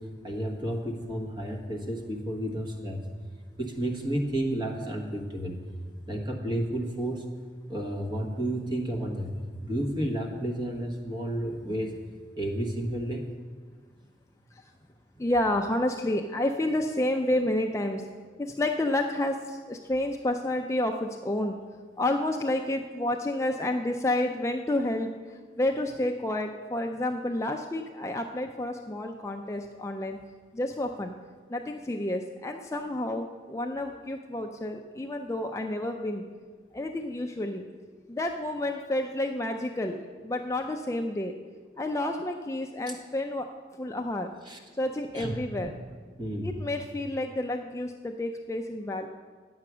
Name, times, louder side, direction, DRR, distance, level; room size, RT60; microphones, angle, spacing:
voice 1, 0.0-3.1 3.6-5.6 6.1-7.2 7.7-9.4 9.6-11.9 12.4-13.3 44.4-44.6 45.1-45.3 46.2-46.5, right 1 dB, 25° right, 1 dB, 1.3 m, -31 dB
voice 2, 15.2-18.0 18.4-21.6 22.0-25.1 25.6-30.2 30.5-31.1 31.5-36.2 36.7-37.7 38.1-41.3 41.8-43.5 43.8-44.3 44.8-45.7 46.4-49.1, left 1 dB, 15° left, 3 dB, 0.4 m, -30 dB
9.4 x 7.7 x 6.0 m, 1.6 s
head